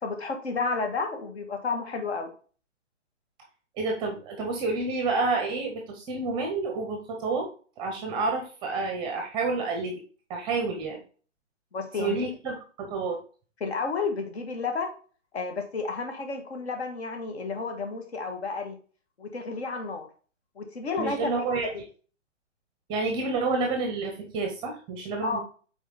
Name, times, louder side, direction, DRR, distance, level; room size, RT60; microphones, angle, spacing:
voice 1, 0.0-2.3 11.7-12.2 13.6-14.9 15.3-18.8 19.2-20.1 20.5-21.7 25.2-25.4, left 4 dB, 60° left, 4 dB, 1.7 m, -31 dB
voice 2, 3.8-7.5 7.8-9.9 10.3-11.0 12.0-13.2 21.0-21.7 22.9-25.4, right 3 dB, 15° right, 3 dB, 0.7 m, -29 dB
5.7 x 4.2 x 4.1 m, 0.40 s
figure-of-eight pair, 135°, 37 cm